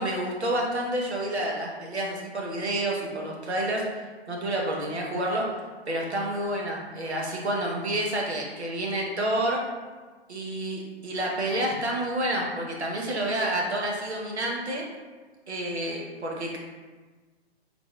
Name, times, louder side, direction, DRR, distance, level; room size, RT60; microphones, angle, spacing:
voice 1, 0.0-3.8 4.3-5.5 5.9-9.6 10.3-14.8 15.5-16.6, right 1 dB, 85° right, -2 dB, 1.0 m, -29 dB
3.9 x 3.6 x 2.3 m, 1.4 s
figure-of-eight pair, 135°, 32 cm